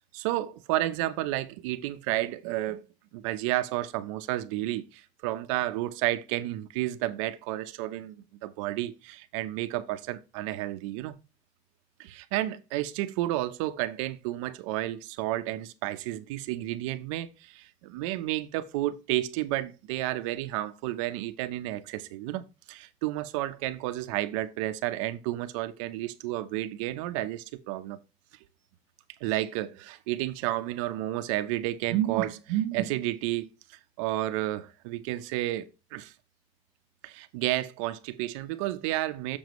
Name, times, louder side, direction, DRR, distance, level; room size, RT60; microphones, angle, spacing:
voice 1, 0.1-2.8 3.1-11.2 12.0-28.0 29.2-36.1 37.0-39.4, right 15 dB, 90° right, 0.9 m, -31 dB
7.2 x 7.0 x 3.1 m
cardioid pair, 160°, 16 cm